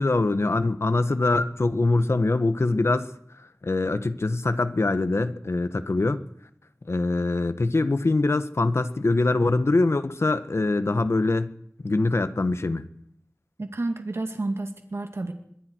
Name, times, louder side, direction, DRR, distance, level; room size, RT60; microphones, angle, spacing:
voice 1, 0.0-3.1 3.6-6.2 6.9-11.5 11.8-12.8, left 2 dB, 65° left, 1.6 m, -23 dB
voice 2, 13.6-15.3, right 2 dB, 65° right, 2.4 m, -30 dB
24.5 x 22.0 x 4.8 m
wide cardioid pair, 60°, 5 cm